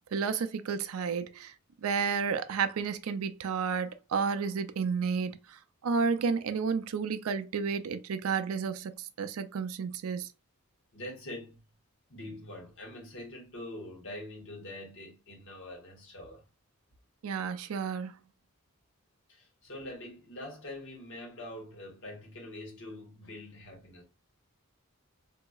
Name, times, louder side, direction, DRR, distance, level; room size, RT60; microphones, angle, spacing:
voice 1, 0.1-1.5 1.8-5.6 5.8-10.3 17.2-18.2, right 5 dB, 75° right, 0.4 m, -31 dB
voice 2, 10.9-11.6 12.1-16.5 19.3-24.0, left 1 dB, 60° left, 1.3 m, -44 dB
3.9 x 2.8 x 2.3 m
head